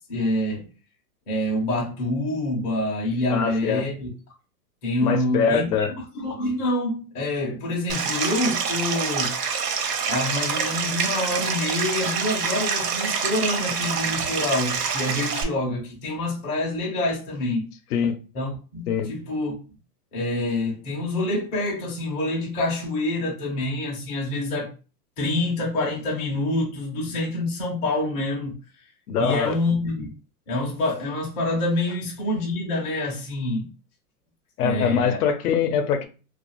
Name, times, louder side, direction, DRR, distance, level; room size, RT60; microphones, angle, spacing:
voice 1, 0.1-0.7 1.3-4.1 4.8-9.3 10.1-17.7 18.3-19.5 20.1-24.7 25.2-28.6 29.2-30.1 30.5-33.7 34.6-35.2, left 1 dB, 15° left, 0.4 m, -26 dB
voice 2, 3.3-3.9 5.0-5.9 17.9-18.2 18.9-19.1 29.1-29.6 34.6-36.1, left 7 dB, 70° left, 0.6 m, -23 dB
Stream, 7.9-15.4, right 6 dB, 70° right, 0.8 m, -26 dB
2.3 x 2.3 x 2.9 m
hypercardioid pair, 135°, 48 cm